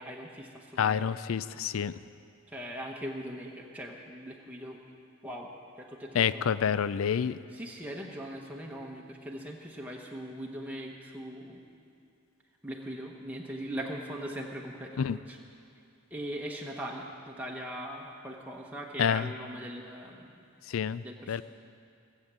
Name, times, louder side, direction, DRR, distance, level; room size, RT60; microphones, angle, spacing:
voice 1, 0.0-1.1 2.5-4.8 5.2-6.6 7.5-11.6 12.6-15.4 16.1-20.4 21.0-21.4, equal, 5° right, -2 dB, 1.0 m, -40 dB
voice 2, 0.8-2.0 6.1-7.4 15.0-15.2 19.0-19.3 20.7-21.4, left 7 dB, 75° left, 16 dB, 0.4 m, -28 dB
17.5 x 8.1 x 7.5 m, 2.5 s
head